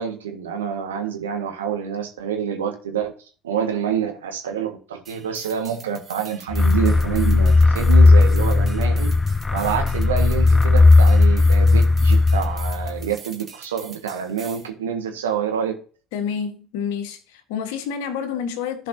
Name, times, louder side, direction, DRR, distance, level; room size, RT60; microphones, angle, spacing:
voice 1, 0.0-3.1 3.4-9.1 9.5-15.8, right 7 dB, 75° right, 1.6 m, -27 dB
sound 1, 5.0-14.7, right 5 dB, 35° right, 1.7 m, -44 dB
sound 2, 6.5-13.1, left 3 dB, 20° left, 0.3 m, -16 dB
voice 2, 16.1-18.9, left 7 dB, 65° left, 1.4 m, -28 dB
15.0 x 5.3 x 2.8 m
figure-of-eight pair, 60°, 0 cm